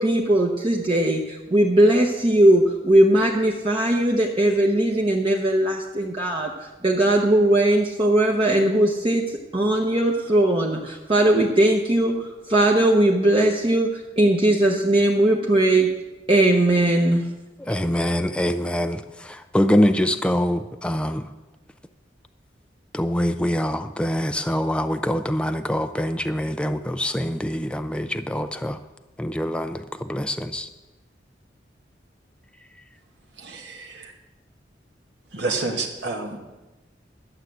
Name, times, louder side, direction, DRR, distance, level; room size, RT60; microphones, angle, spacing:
voice 1, 0.0-6.5 6.8-9.2 9.5-13.9 14.2-15.9 16.3-17.2, right 1 dB, 30° right, -1 dB, 0.9 m, -19 dB
voice 2, 17.6-21.3 22.9-28.8 29.2-30.7, equal, 5° left, 8 dB, 0.4 m, -24 dB
voice 3, 33.4-34.1 35.3-36.4, right 3 dB, 75° right, 1 dB, 1.5 m, -29 dB
11.5 x 7.3 x 7.9 m, 1.1 s
head